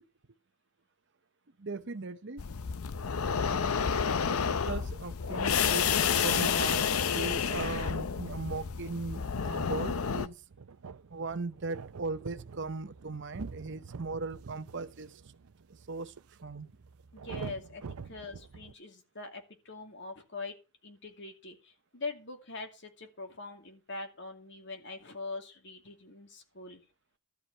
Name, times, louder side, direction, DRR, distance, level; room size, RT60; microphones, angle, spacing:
voice 1, 1.6-2.4 3.8-10.4 11.1-15.2 15.9-16.1 16.4-16.7, right 3 dB, 55° right, 0.8 m, -38 dB
sound 1, 2.4-10.3, left 6 dB, 80° left, 0.7 m, -30 dB
sound 2, 8.4-18.7, right 5 dB, 90° right, 0.6 m, -47 dB
voice 2, 17.1-20.6 20.8-26.8, left 3 dB, 55° left, 2.5 m, -43 dB
13.0 x 4.8 x 8.8 m
head